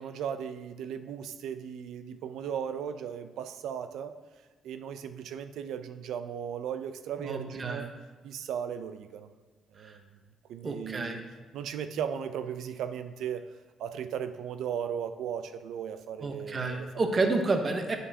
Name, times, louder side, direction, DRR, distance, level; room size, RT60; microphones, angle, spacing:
voice 1, 0.0-4.2 4.6-7.9 8.2-9.3 9.7-10.0 10.5-11.2 11.5-13.4 13.8-17.1, right 8 dB, 80° right, 9 dB, 0.4 m, -36 dB
voice 2, 7.2-7.9 9.8-9.9 10.6-11.2 16.2-18.0, right 3 dB, 35° right, 5 dB, 0.9 m, -30 dB
9.7 x 5.3 x 2.8 m, 1.4 s
cardioid pair, 90°, 0 cm